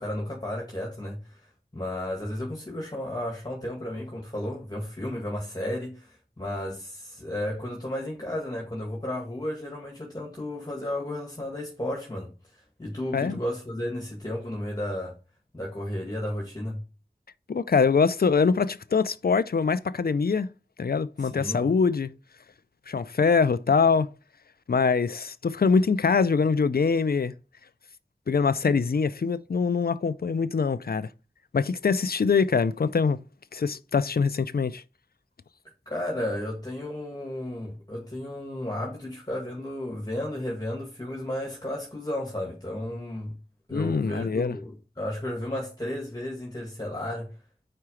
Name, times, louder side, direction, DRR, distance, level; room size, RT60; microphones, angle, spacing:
voice 1, 0.0-15.2 15.5-16.8 21.2-21.7 35.9-43.3 43.7-47.4, left 1 dB, 20° left, 1.9 m, -33 dB
voice 2, 17.5-20.5 20.8-22.1 22.9-24.1 24.7-27.3 28.3-31.1 31.5-33.2 33.5-34.8 43.7-44.6, left 5 dB, 60° left, 0.5 m, -23 dB
4.7 x 4.4 x 4.9 m
wide cardioid pair, 45°, 18 cm